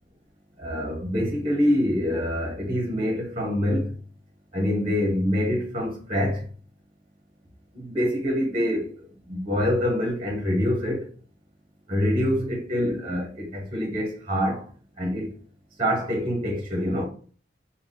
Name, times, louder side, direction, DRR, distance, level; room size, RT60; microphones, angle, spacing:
voice 1, 0.6-3.9 4.5-6.4 7.7-11.1 11.9-14.6 15.0-15.3 15.8-17.1, equal, 30° right, 0.9 m, -25 dB
3.8 x 2.2 x 3.6 m
head